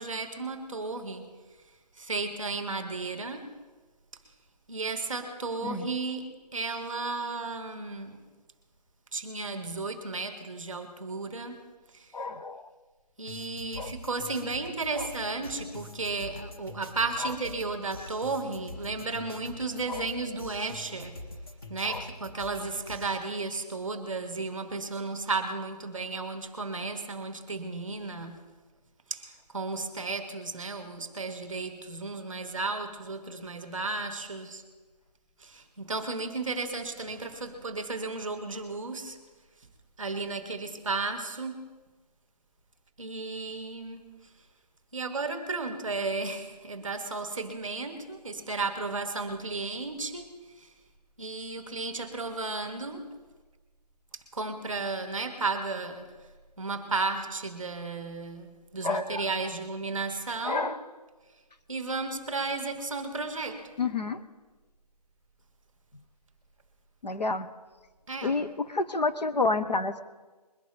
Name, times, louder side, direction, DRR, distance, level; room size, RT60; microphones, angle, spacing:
voice 1, 0.0-1.3 2.0-3.5 4.7-8.2 9.1-11.6 11.9-12.1 13.2-21.2 21.7-28.4 29.1-34.6 35.4-39.2 40.0-41.6 43.0-44.1 44.9-50.3 50.6-50.7 51.2-53.1 54.3-56.1 56.6-60.7 61.7-63.7 68.1-68.4, right 3 dB, ahead, 6 dB, 1.1 m, -34 dB
voice 2, 5.6-5.9 12.1-12.7 13.8-13.9 14.9-15.1 17.2-17.3 19.9-20.1 21.8-22.0 58.8-59.2 60.4-60.8 63.8-64.2 67.0-67.5 68.2-70.0, left 3 dB, 85° left, 8 dB, 1.3 m, -29 dB
sound 1, 13.3-23.2, left 1 dB, 35° left, 2.2 m, -44 dB
22.0 x 11.0 x 3.5 m, 1.3 s
figure-of-eight pair, 175°, 21 cm